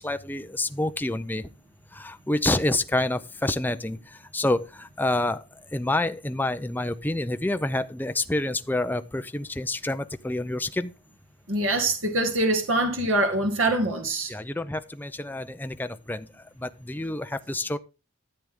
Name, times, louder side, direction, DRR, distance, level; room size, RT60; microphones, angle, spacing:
voice 1, 0.0-1.5 1.9-5.4 5.7-10.9 14.3-16.3 16.6-17.8, left 2 dB, 10° left, 0.5 m, -28 dB
voice 2, 11.5-14.3, right 2 dB, 85° right, 2.1 m, -24 dB
13.5 x 7.5 x 3.7 m
head